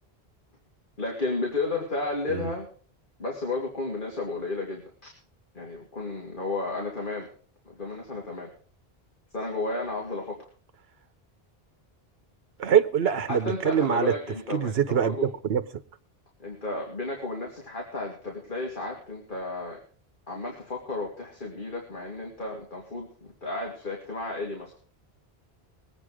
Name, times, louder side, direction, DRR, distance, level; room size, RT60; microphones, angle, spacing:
voice 1, 1.0-2.7 3.2-5.1 5.5-7.3 7.7-8.5 9.3-10.4 13.3-15.3 16.4-19.8 20.3-24.7, left 2 dB, 50° left, 2.8 m, -33 dB
voice 2, 12.6-14.1 14.5-15.6, right 8 dB, 70° right, 1.1 m, -24 dB
20.5 x 9.0 x 4.9 m
omnidirectional pair, 1.1 m